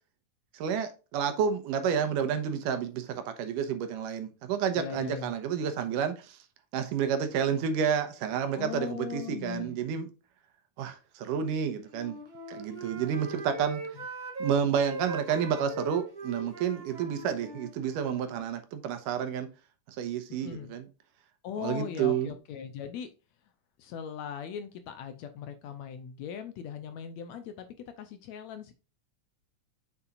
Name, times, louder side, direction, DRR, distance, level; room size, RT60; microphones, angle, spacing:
voice 1, 0.5-6.4 6.7-10.1 10.8-12.2 12.5-13.8 14.4-19.5 19.9-20.9 21.6-22.3, right 7 dB, 85° right, 2.6 m, -30 dB
voice 2, 4.8-5.3 8.5-9.8 13.0-13.1 13.9-14.1 20.3-20.7 21.4-23.1 23.8-27.7 28.0-28.7, left 8 dB, 75° left, 1.8 m, -39 dB
Wind instrument woodwind instrument, 11.8-14.5 14.8-18.5, right 2 dB, 40° right, 0.6 m, -40 dB
7.0 x 6.9 x 2.5 m
omnidirectional pair, 3.7 m